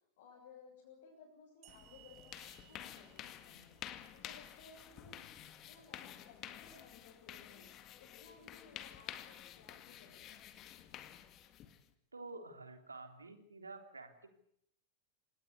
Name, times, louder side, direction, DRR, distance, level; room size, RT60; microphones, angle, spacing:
voice 1, 0.2-3.8 4.1-10.4, left 4 dB, 55° left, -3 dB, 7.7 m, -60 dB
sound 1, 1.6-5.0, right 16 dB, 40° right, 2.9 m, -64 dB
sound 2, 1.7-11.9, left 11 dB, 35° left, 2.0 m, -51 dB
voice 2, 12.1-14.3, right 3 dB, 80° right, 6 dB, 3.5 m, -50 dB
28.0 x 18.5 x 8.2 m, 0.73 s
figure-of-eight pair, 90°, 0 cm